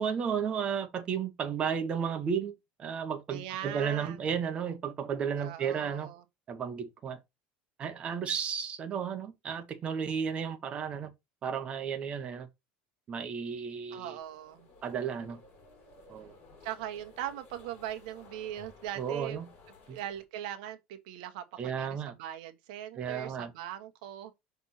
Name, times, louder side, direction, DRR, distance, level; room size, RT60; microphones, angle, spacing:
voice 1, 0.0-2.5 2.8-6.1 6.5-7.2 7.8-11.1 11.4-12.5 13.1-14.2 14.8-15.4 16.1-16.4 19.0-19.5 19.9-20.0 21.6-22.1 23.0-23.5, right 7 dB, 25° right, 1.2 m, -33 dB
voice 2, 3.3-4.2 5.4-6.2 13.9-14.7 16.6-19.4 19.9-24.3, right 12 dB, 80° right, 1.3 m, -40 dB
sound 1, 14.2-20.2, left 4 dB, 40° left, 4.2 m, -55 dB
6.1 x 3.5 x 5.6 m
cardioid pair, 165°, 4 cm